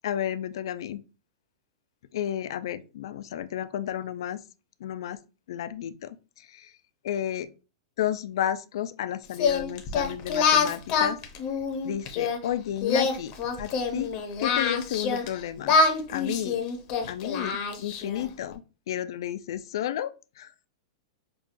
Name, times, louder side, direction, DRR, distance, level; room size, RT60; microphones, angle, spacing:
voice 1, 0.0-1.0 2.1-4.4 4.8-5.2 5.5-6.7 7.0-7.5 8.0-11.2 11.8-13.3 13.6-14.1 14.4-15.7 16.1-16.6 17.1-20.5, left 11 dB, 65° left, 0.3 m, -32 dB
Singing, 9.3-12.4 12.8-15.3 15.6-18.2, left 5 dB, 30° left, 0.6 m, -25 dB
5.7 x 2.3 x 2.5 m
supercardioid pair, 170°, 3 cm